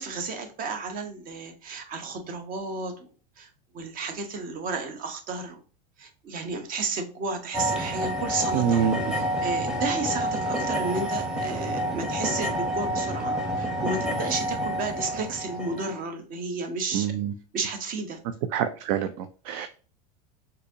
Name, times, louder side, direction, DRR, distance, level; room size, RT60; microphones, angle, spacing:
voice 1, 0.0-3.1 3.4-3.5 3.7-5.6 6.0-8.8 9.1-17.1 17.5-18.2, right 3 dB, 40° right, 6 dB, 0.9 m, -32 dB
sound 1, 7.5-16.0, equal, 5° right, 0.8 m, -29 dB
voice 2, 8.5-9.1 16.9-17.3 18.5-19.7, right 8 dB, 60° right, 10 dB, 0.4 m, -26 dB
3.9 x 2.7 x 2.6 m, 0.38 s
hypercardioid pair, 100°, 21 cm